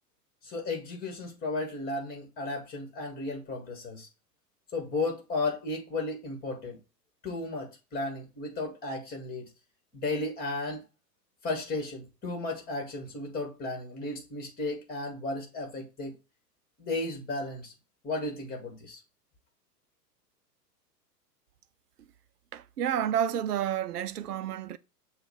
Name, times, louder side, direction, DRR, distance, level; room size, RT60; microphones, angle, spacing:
voice 1, 0.4-4.1 4.7-6.8 7.2-9.4 9.9-10.8 11.4-16.1 16.8-17.7 18.0-19.0, left 2 dB, 20° left, 1.9 m, -34 dB
voice 2, 22.5-24.8, right 10 dB, 70° right, 0.6 m, -30 dB
6.8 x 2.5 x 5.5 m
figure-of-eight pair, 100°, 49 cm